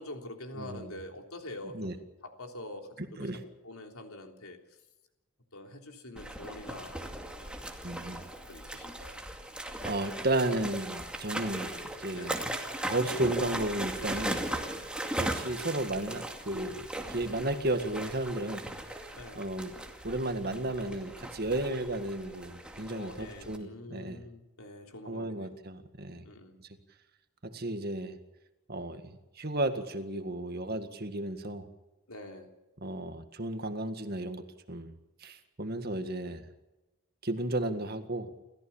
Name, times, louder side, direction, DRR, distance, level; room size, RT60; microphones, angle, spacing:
voice 1, 0.0-4.6 5.5-7.6 7.9-9.2 12.1-12.4 14.5-14.7 19.1-19.4 21.6-21.7 22.9-25.6 26.2-26.6 32.1-32.5, left 1 dB, 90° left, 4 dB, 3.5 m, -46 dB
voice 2, 0.6-1.0 1.7-1.9 3.0-3.4 7.8-8.2 9.8-12.5 12.8-14.5 15.2-19.1 19.4-19.7 20.0-24.2 25.1-26.2 27.4-28.2 28.7-31.7 32.8-34.4 34.7-34.9 35.2-36.5 37.2-38.3, right 1 dB, 45° right, 8 dB, 1.9 m, -33 dB
sound 1, 6.2-23.6, right 1 dB, 5° right, 2.3 m, -38 dB
29.0 x 14.5 x 7.2 m, 1.0 s
head